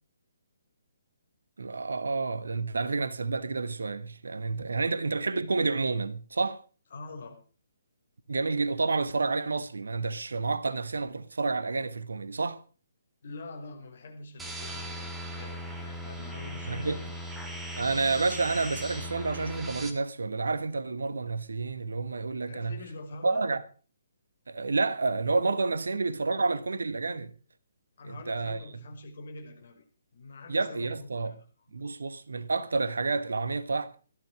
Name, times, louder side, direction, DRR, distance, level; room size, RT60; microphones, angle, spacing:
voice 1, 1.6-6.6 8.3-12.6 16.7-17.0 17.8-22.8 23.2-23.6 24.5-27.3 28.1-28.8 30.5-31.3 31.7-34.0, right 3 dB, 65° right, 1.3 m, -29 dB
voice 2, 6.9-7.4 13.2-17.3 22.5-23.5 28.0-29.8 30.1-31.4, left 2 dB, 50° left, 5.5 m, -44 dB
sound 1, 14.4-19.9, equal, 5° right, 2.3 m, -38 dB
17.0 x 13.5 x 4.9 m
figure-of-eight pair, 135°, 0 cm